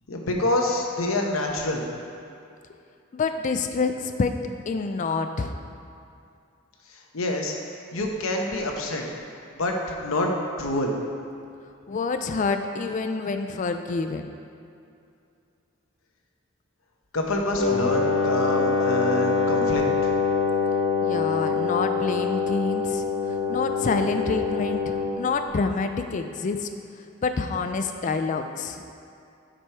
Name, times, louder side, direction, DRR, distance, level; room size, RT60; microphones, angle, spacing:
voice 1, 0.1-1.8 7.1-7.5 7.9-9.0 9.6-10.3 10.6-10.9 17.1-19.8, left 1 dB, 80° left, 1 dB, 0.9 m, -26 dB
voice 2, 3.1-4.3 4.7-5.6 11.9-14.4 21.0-26.7 27.2-28.9, left 4 dB, 35° left, 6 dB, 0.3 m, -27 dB
Wind instrument woodwind instrument, 17.6-25.2, left 4 dB, 60° left, 1.3 m, -24 dB
7.4 x 5.2 x 4.5 m, 2.5 s
head